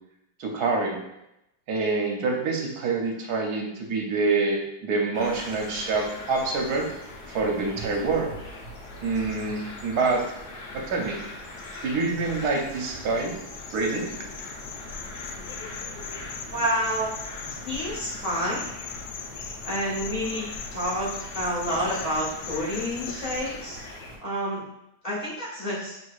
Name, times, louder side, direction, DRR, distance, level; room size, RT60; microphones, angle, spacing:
voice 1, 0.4-1.0 1.7-6.9 7.3-8.3 9.0-10.2 10.7-11.2 11.8-13.3 13.7-14.0, right 3 dB, 75° right, 1 dB, 1.2 m, -26 dB
sound 1, 5.1-24.2, left 2 dB, 50° left, 0.8 m, -41 dB
sound 2, 13.1-23.5, left 5 dB, 85° left, 1.1 m, -39 dB
voice 2, 16.5-17.1 17.6-18.6 19.6-21.1 21.3-23.8 24.2-24.6 25.0-25.9, equal, 25° left, -8 dB, 1.4 m, -29 dB
6.2 x 3.0 x 2.3 m, 0.86 s
omnidirectional pair, 1.7 m